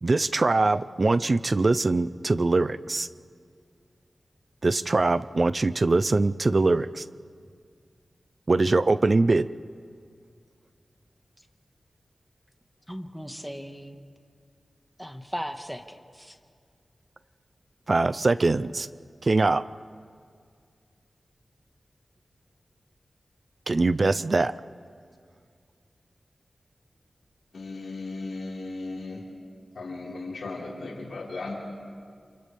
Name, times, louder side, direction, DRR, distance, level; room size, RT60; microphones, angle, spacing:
voice 1, 0.0-3.1 4.6-7.1 8.5-9.5 17.9-18.9 19.2-19.6 23.7-24.5, right 3 dB, 50° right, 15 dB, 0.6 m, -22 dB
voice 2, 12.9-14.0 15.0-16.4, equal, ahead, 5 dB, 1.6 m, -37 dB
voice 3, 27.5-29.2 29.7-31.6, left 3 dB, 85° left, -4 dB, 4.6 m, -36 dB
28.5 x 28.0 x 3.5 m, 2.1 s
cardioid pair, 45°, 0 cm